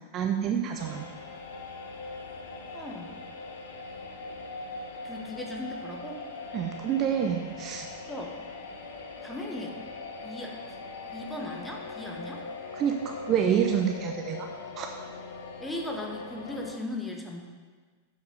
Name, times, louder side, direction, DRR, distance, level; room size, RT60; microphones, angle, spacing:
voice 1, 0.1-1.1 6.5-7.9 12.7-14.5 14.8-14.9, right 8 dB, 35° right, 4 dB, 0.6 m, -27 dB
sound 1, 0.8-16.7, left 3 dB, 60° left, 1.0 m, -41 dB
voice 2, 2.7-3.2 5.0-6.2 8.1-8.3 9.2-9.8 10.2-10.5 11.0-12.4 15.6-17.4, left 1 dB, 5° left, 0 dB, 1.3 m, -37 dB
7.4 x 6.0 x 5.4 m, 1.5 s
figure-of-eight pair, 90°, 0 cm